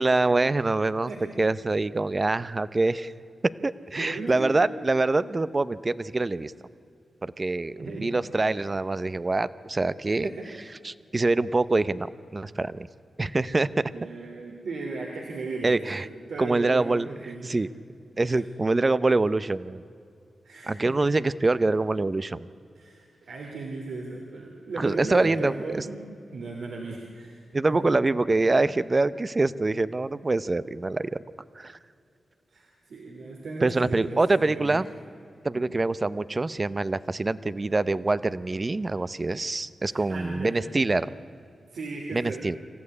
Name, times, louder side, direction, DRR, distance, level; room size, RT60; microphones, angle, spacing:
voice 1, 0.0-1.1 1.4-3.1 3.6-6.5 7.2-10.3 10.8-12.9 13.2-13.9 15.6-16.1 16.4-17.1 17.4-17.7 18.2-19.8 20.7-22.5 24.8-25.8 27.5-31.1 31.6-31.8 33.6-34.9 35.4-41.1 42.1-42.6, right 2 dB, 30° right, 16 dB, 0.7 m, -25 dB
voice 2, 4.0-4.6 7.8-8.1 10.2-10.3 13.9-16.0 16.3-17.5 18.2-18.4 20.4-21.1 22.7-27.4 27.7-27.8 32.5-34.8 39.8-40.7 41.7-42.4, right 3 dB, 80° right, -1 dB, 3.0 m, -36 dB
26.0 x 15.0 x 9.7 m, 2.5 s
wide cardioid pair, 90°, 0 cm